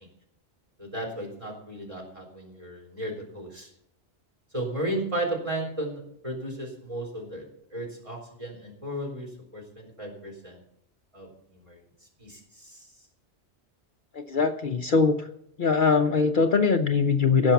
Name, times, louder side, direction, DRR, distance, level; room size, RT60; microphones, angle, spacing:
voice 1, 0.8-3.7 4.5-7.4 7.7-10.6 11.1-11.8 12.2-12.8, right 1 dB, 30° right, 0 dB, 3.9 m, -34 dB
voice 2, 14.1-15.3 15.6-17.5, left 4 dB, 50° left, 6 dB, 0.8 m, -22 dB
16.0 x 6.5 x 7.0 m, 0.72 s
omnidirectional pair, 1.1 m